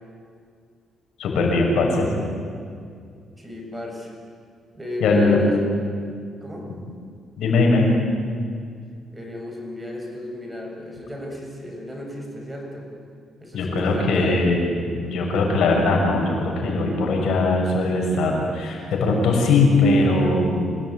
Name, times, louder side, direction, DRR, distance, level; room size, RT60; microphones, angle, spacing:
voice 1, 1.2-2.1 5.0-5.4 7.4-7.9 13.5-14.6 15.0-20.7, left 3 dB, 75° left, 0 dB, 7.1 m, -20 dB
voice 2, 3.4-4.1 4.7-5.7 6.4-6.7 9.1-12.9 13.4-14.5, left 1 dB, 10° right, 1 dB, 7.1 m, -34 dB
28.0 x 17.5 x 9.7 m, 2.2 s
cardioid pair, 90°, 0 cm